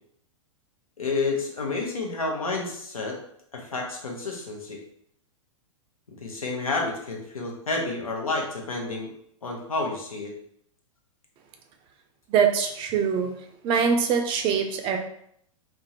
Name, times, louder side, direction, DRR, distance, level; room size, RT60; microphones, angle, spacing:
voice 1, 1.0-3.2 3.5-4.8 6.1-9.1 9.4-10.3, left 3 dB, 90° left, 0 dB, 0.8 m, -30 dB
voice 2, 12.3-13.3 13.6-15.0, right 6 dB, 30° right, 5 dB, 0.4 m, -23 dB
3.5 x 2.0 x 2.8 m, 0.68 s
hypercardioid pair, 110°, 18 cm